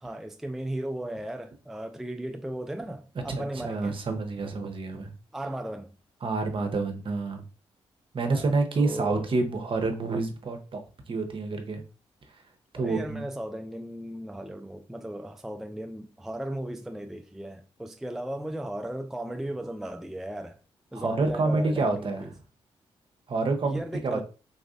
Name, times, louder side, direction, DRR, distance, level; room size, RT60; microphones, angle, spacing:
voice 1, 0.0-4.0 5.3-5.9 8.3-9.3 12.8-20.6 20.9-22.3 23.6-24.2, right 1 dB, 5° right, 0.3 m, -36 dB
voice 2, 3.3-5.1 6.2-7.4 8.1-11.8 12.7-13.2 20.9-22.3 23.3-24.2, right 3 dB, 50° right, 0.8 m, -28 dB
3.9 x 2.5 x 2.4 m
supercardioid pair, 50°, 12 cm